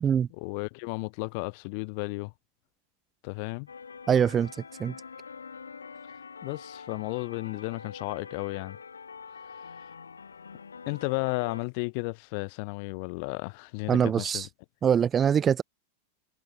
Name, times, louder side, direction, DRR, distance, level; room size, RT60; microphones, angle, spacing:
voice 1, 0.4-2.3 3.2-3.7 6.4-8.8 10.9-14.5, left 33 dB, 45° left, 0.6 m, -33 dB
sound 1, 3.7-11.6, left 5 dB, 75° left, 2.2 m, -45 dB
voice 2, 4.1-4.5 4.8-4.9 13.9-14.5 14.8-15.6, right 8 dB, 25° right, 0.5 m, -23 dB
figure-of-eight pair, 90°, 0 cm